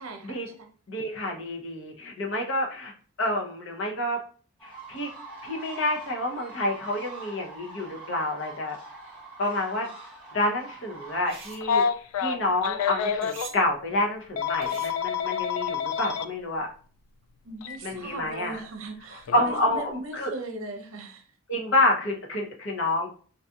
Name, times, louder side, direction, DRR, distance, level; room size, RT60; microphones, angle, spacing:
voice 1, 0.0-0.7 17.4-21.2, right 2 dB, 70° right, 4 dB, 0.7 m, -39 dB
voice 2, 0.9-2.9 3.2-4.2 4.6-5.1 5.4-8.8 9.4-9.9 10.3-16.7 17.8-18.6 19.3-20.3 21.5-23.1, left 1 dB, 60° left, 1 dB, 0.8 m, -28 dB
sound 1, 4.6-11.6, right 3 dB, 5° left, 1.0 m, -44 dB
sound 2, 11.1-11.7 13.2-13.6 14.6-15.1, right 5 dB, 25° right, 0.5 m, -43 dB
Telephone, 11.6-13.5 14.4-16.3 17.6-17.8 19.3-19.5, left 7 dB, 80° left, 0.3 m, -27 dB
4.0 x 2.6 x 2.4 m, 0.41 s
head